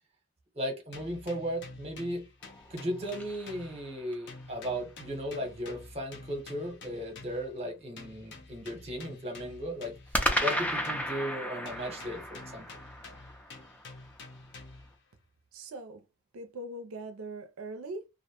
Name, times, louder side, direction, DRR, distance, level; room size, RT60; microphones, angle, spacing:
voice 1, 0.5-2.3 2.7-9.9 10.4-12.7, equal, 30° right, 0.8 m, -36 dB
sound 1, 0.9-4.0 4.3-7.5 8.0-11.3 11.6-15.0, left 3 dB, 55° left, 0.5 m, -49 dB
sound 2, 2.4-4.3 10.1-14.4, equal, 5° left, 0.3 m, -34 dB
voice 2, 15.5-16.0 16.3-18.1, right 2 dB, 85° right, 0.4 m, -41 dB
2.5 x 2.1 x 2.8 m
head